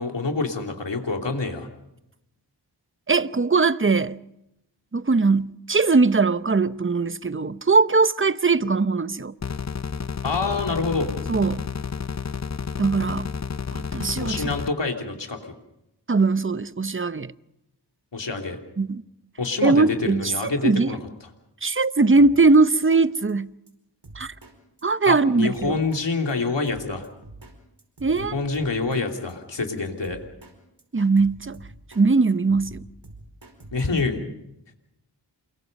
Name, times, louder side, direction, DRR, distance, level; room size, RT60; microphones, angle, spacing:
voice 1, 0.0-1.7 10.2-11.1 14.2-15.4 18.1-18.6 19.4-21.3 25.0-27.1 28.1-30.2 33.7-34.2, left 3 dB, 75° left, 3.2 m, -27 dB
voice 2, 3.1-4.2 4.9-9.3 11.3-11.6 12.8-13.3 13.7-14.4 16.1-17.3 18.8-19.0 19.6-20.3 20.6-20.9 21.6-23.5 24.2-24.3 24.8-25.8 28.0-28.3 30.9-31.6 32.0-32.8, right 3 dB, 30° right, 0.9 m, -20 dB
sound 1, 9.4-14.7, left 6 dB, 40° left, 0.8 m, -31 dB
Drum kit, 22.2-22.6 22.9-23.0 23.3-23.4 23.7-23.8 24.0-24.5 24.8-24.9 25.2-25.3 25.5-26.0 26.3-26.4 26.7-27.5 27.8-29.0 29.3-29.4 29.7-29.8 30.0-30.5 30.8-32.0 32.3-34.0, right 2 dB, 65° right, 5.0 m, -45 dB
28.5 x 22.5 x 5.4 m
wide cardioid pair, 50°, 43 cm